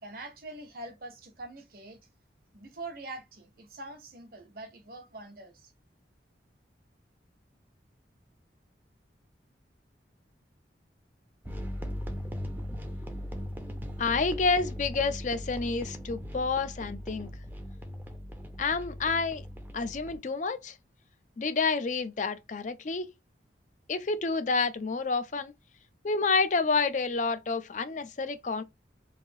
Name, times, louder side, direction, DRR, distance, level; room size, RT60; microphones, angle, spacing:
voice 1, 0.0-2.0 2.5-5.7, right 2 dB, 55° right, 0.9 m, -44 dB
sound 1, 11.4-20.2, equal, 10° right, 0.6 m, -39 dB
voice 2, 14.0-17.3 18.6-19.4 19.7-20.8 21.4-23.1 23.9-25.5 26.0-28.6, left 4 dB, 45° left, 0.5 m, -29 dB
3.2 x 2.7 x 2.6 m
head